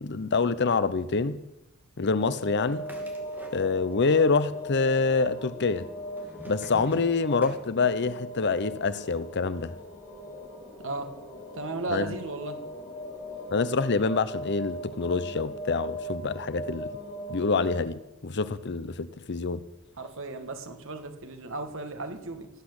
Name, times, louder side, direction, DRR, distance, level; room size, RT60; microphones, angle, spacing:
voice 1, 0.0-1.4 2.0-2.8 3.5-5.9 6.5-9.7 11.9-12.1 13.5-16.9 17.3-19.6, left 4 dB, 55° left, 0.7 m, -26 dB
sound 1, 2.2-17.8, equal, 35° left, 4.0 m, -39 dB
sound 2, 2.6-4.1 4.3-5.1 5.7-8.2, right 1 dB, 10° right, 2.4 m, -47 dB
voice 2, 10.8-11.1 11.5-12.6 20.0-22.5, right 3 dB, 65° right, 1.9 m, -35 dB
18.0 x 8.5 x 8.0 m
head